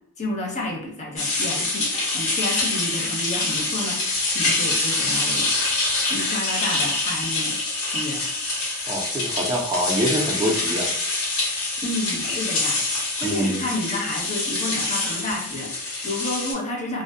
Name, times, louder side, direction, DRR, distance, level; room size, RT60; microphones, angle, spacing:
voice 1, 0.2-5.5 6.1-7.6 7.9-8.2 11.8-17.0, left 2 dB, 30° left, -1 dB, 0.6 m, -30 dB
sound 1, 1.2-16.5, left 2 dB, 80° left, 1.2 m, -25 dB
voice 2, 8.9-10.9 13.2-13.7, equal, 20° right, -1 dB, 0.3 m, -25 dB
2.4 x 2.0 x 2.5 m, 0.72 s
head